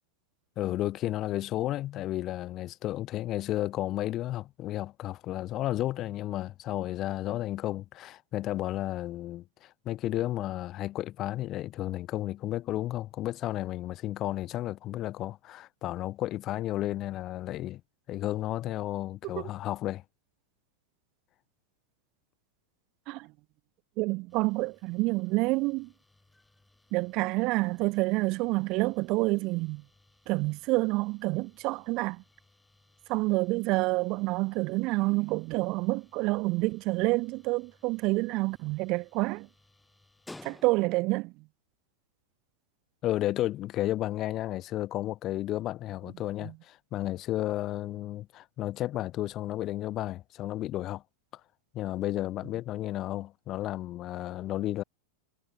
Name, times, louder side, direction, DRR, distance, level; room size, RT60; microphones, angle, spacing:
voice 1, 0.6-17.8 18.1-20.0 43.0-51.0 51.7-54.8, left 14 dB, 40° left, 0.5 m, -32 dB
voice 2, 24.0-25.9 26.9-29.8 30.3-32.2 33.1-39.5 40.4-41.3, right 23 dB, 50° right, 0.5 m, -28 dB
sound 1, 24.3-41.1, left 2 dB, 5° left, 3.1 m, -59 dB
hypercardioid pair, 100°, 0 cm